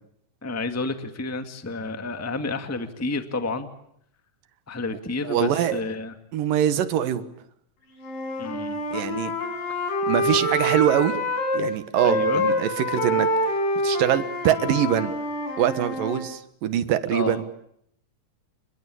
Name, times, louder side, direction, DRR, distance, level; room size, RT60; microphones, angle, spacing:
voice 1, 0.4-3.7 4.7-6.1 8.4-8.8 12.0-12.4 17.1-17.4, left 3 dB, 5° left, 8 dB, 1.2 m, -30 dB
voice 2, 5.2-5.8 6.3-7.2 8.9-9.3 10.1-11.1 11.5-13.3 13.8-15.1 15.6-17.4, right 10 dB, 80° right, 12 dB, 3.2 m, -23 dB
Wind instrument woodwind instrument, 8.0-11.6 11.9-16.2, left 1 dB, 75° left, 6.4 m, -26 dB
30.0 x 21.5 x 8.6 m, 0.71 s
omnidirectional pair, 3.9 m